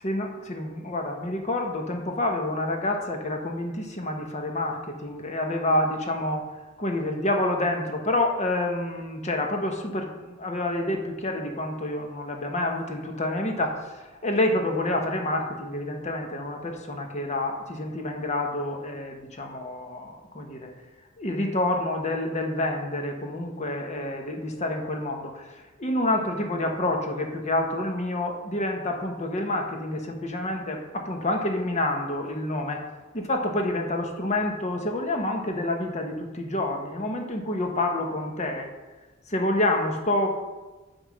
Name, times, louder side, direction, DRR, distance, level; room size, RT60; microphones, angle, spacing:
voice 1, 0.0-6.4 6.8-20.7 21.2-32.8 33.1-38.7 39.3-40.3, left 1 dB, 35° left, 3 dB, 1.1 m, -28 dB
9.2 x 3.6 x 6.2 m, 1.2 s
head